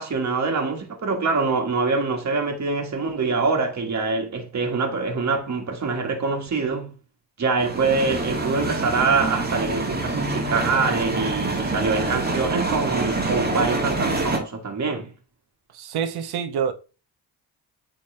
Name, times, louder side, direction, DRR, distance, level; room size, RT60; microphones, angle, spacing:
voice 1, 0.0-6.9 7.4-15.1, right 4 dB, 45° right, 1.8 m, -24 dB
sound 1, 7.6-14.4, right 2 dB, 25° right, 1.7 m, -26 dB
voice 2, 15.8-16.7, right 7 dB, 70° right, 0.9 m, -26 dB
8.5 x 3.6 x 3.4 m
cardioid pair, 80°, 40 cm